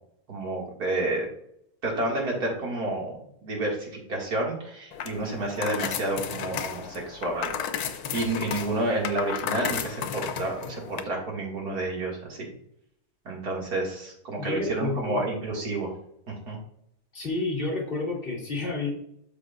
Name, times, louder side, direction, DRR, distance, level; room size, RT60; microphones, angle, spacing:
voice 1, 0.3-1.3 1.8-12.5 13.2-15.9 16.3-16.6, right 2 dB, 85° right, -2 dB, 2.8 m, -30 dB
sound 1, 4.9-11.0, left 8 dB, 90° left, 1.2 m, -33 dB
voice 2, 14.3-15.2 17.1-18.9, left 2 dB, 35° left, -2 dB, 2.9 m, -30 dB
12.5 x 5.0 x 2.5 m, 0.72 s
omnidirectional pair, 1.6 m